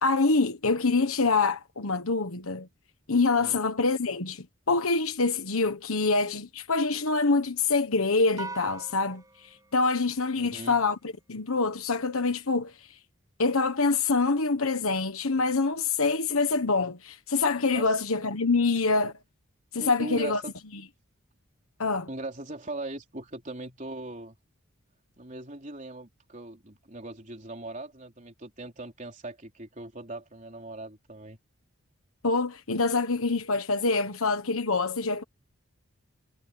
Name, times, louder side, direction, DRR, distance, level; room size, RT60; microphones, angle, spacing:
voice 1, 0.0-2.7 3.1-9.2 9.7-11.0 11.3-12.7 13.4-19.1 19.7-20.4 21.8-22.1 32.2-35.2, left 3 dB, 75° left, 1.3 m, -25 dB
sound 1, 8.4-10.9, right 3 dB, 15° right, 7.6 m, -43 dB
voice 2, 10.3-10.9 17.7-18.0 19.8-20.5 22.1-24.4 25.2-31.4, right 2 dB, 35° right, 4.0 m, -40 dB
head